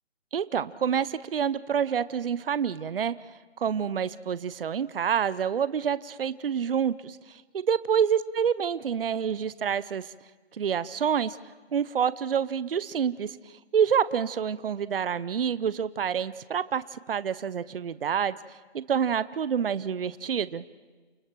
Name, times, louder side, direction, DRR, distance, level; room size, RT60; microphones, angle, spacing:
voice 1, 0.3-3.1 3.6-10.1 10.5-11.4 11.7-13.4 13.7-18.4 18.7-20.6, right 7 dB, 55° right, 16 dB, 0.8 m, -27 dB
29.5 x 25.0 x 4.7 m, 1.3 s
hypercardioid pair, 165°, 33 cm